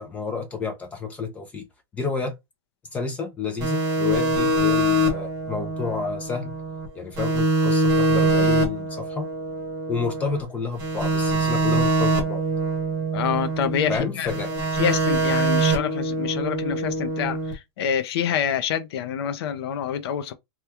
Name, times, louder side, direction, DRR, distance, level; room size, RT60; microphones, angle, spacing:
voice 1, 0.0-1.7 1.9-2.3 2.9-6.5 6.9-9.3 9.9-12.4 13.9-14.5, left 4 dB, 10° left, 0.3 m, -30 dB
sound 1, 3.6-6.9 7.2-10.4 10.8-14.0 14.3-17.5, right 2 dB, 20° right, 1.0 m, -24 dB
voice 2, 13.1-14.3 14.7-20.3, left 8 dB, 65° left, 0.5 m, -26 dB
2.9 x 2.2 x 3.3 m
supercardioid pair, 175°, 14 cm